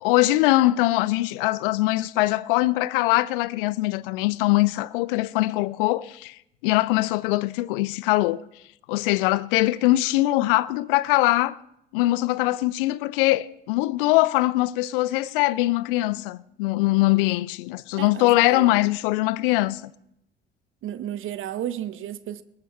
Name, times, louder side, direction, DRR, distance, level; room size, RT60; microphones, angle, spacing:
voice 1, 0.0-8.4 8.9-11.6 11.9-19.9, left 18 dB, 65° left, 0.5 m, -22 dB
voice 2, 18.0-18.8 20.8-22.4, right 11 dB, 45° right, 0.8 m, -33 dB
20.5 x 10.5 x 3.3 m
figure-of-eight pair, 50°, 30 cm